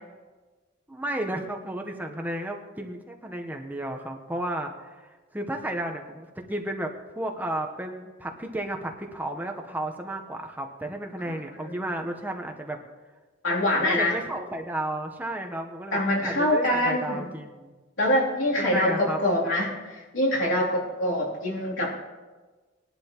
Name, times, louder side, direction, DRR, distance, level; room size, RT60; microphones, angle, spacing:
voice 1, 0.9-12.8 13.7-17.7 18.5-19.2, right 1 dB, 10° right, 3 dB, 0.9 m, -33 dB
voice 2, 13.4-14.2 15.9-17.3 18.0-21.9, left 1 dB, 90° left, -4 dB, 2.9 m, -25 dB
19.5 x 11.5 x 2.9 m, 1.3 s
head